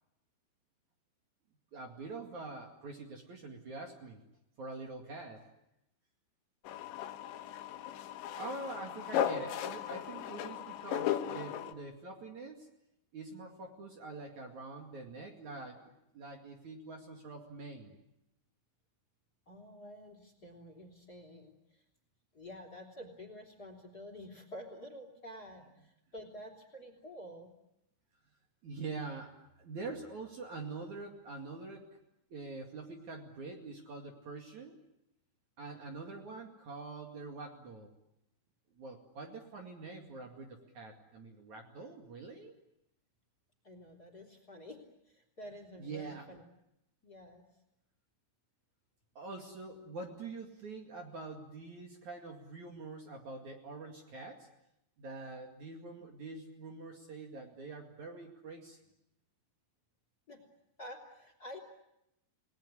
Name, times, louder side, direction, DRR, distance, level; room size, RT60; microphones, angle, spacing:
voice 1, 1.7-4.2 4.6-5.4 8.4-12.7 13.1-18.0 28.6-29.3 29.6-32.0 32.3-34.8 35.6-37.9 38.7-42.5 45.8-46.2 49.1-54.5 55.0-58.8, right 3 dB, 50° right, 2 dB, 3.2 m, -45 dB
sound 1, 6.6-11.7, left 10 dB, 85° left, 3.6 m, -36 dB
voice 2, 19.5-21.8 22.3-27.5 35.7-35.8 43.6-46.4 47.0-47.4 60.3-60.4 60.8-61.6, equal, 25° left, 5 dB, 3.5 m, -49 dB
29.5 x 19.5 x 9.7 m, 0.84 s
omnidirectional pair, 5.0 m